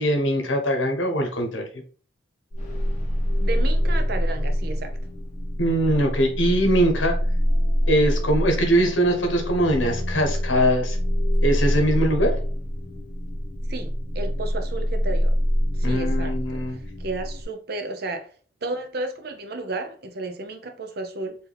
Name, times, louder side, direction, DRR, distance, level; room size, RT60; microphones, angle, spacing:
voice 1, 0.0-1.6 5.6-7.2 7.9-11.0 11.4-12.4 15.8-16.8, right 1 dB, 80° left, 1.2 m, -22 dB
sound 1, 2.5-17.4, equal, 35° left, 1.2 m, -25 dB
voice 2, 3.4-5.0 13.7-15.3 15.7-18.3 18.6-21.4, right 3 dB, 50° right, 0.7 m, -33 dB
4.6 x 2.8 x 3.4 m
head